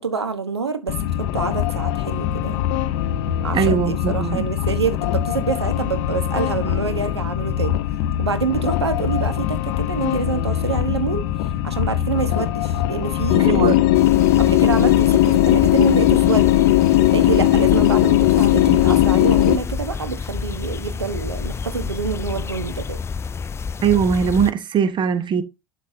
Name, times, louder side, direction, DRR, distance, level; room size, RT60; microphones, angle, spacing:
voice 1, 0.0-2.6 3.4-7.8 8.2-11.3 11.6-13.8 14.4-16.5 16.9-23.0, right 5 dB, 85° right, 1.2 m, -26 dB
sound 1, 0.9-19.6, left 13 dB, 55° left, 0.8 m, -19 dB
voice 2, 3.5-4.5 13.4-13.8 17.4-17.5 23.8-25.4, right 7 dB, 35° right, 1.2 m, -20 dB
sound 2, 13.9-24.5, left 5 dB, 20° left, 0.4 m, -29 dB
12.0 x 4.4 x 2.8 m
figure-of-eight pair, 70°, 14 cm